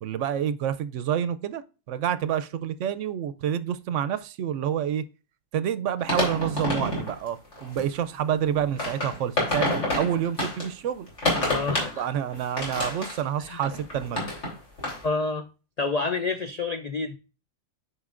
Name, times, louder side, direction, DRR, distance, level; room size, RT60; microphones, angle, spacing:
voice 1, 0.0-5.0 5.5-11.1 12.0-14.2, right 9 dB, 70° right, 0.8 m, -28 dB
sound 1, 6.0-7.1 7.5-7.8 8.5-10.7 11.1-12.0 12.3-14.5 14.8-15.0, left 1 dB, 60° left, 3.6 m, -28 dB
voice 2, 11.5-12.1 13.4-13.6 15.0-15.5 15.8-17.2, left 3 dB, 80° left, 0.3 m, -28 dB
9.6 x 5.2 x 2.5 m
omnidirectional pair, 1.4 m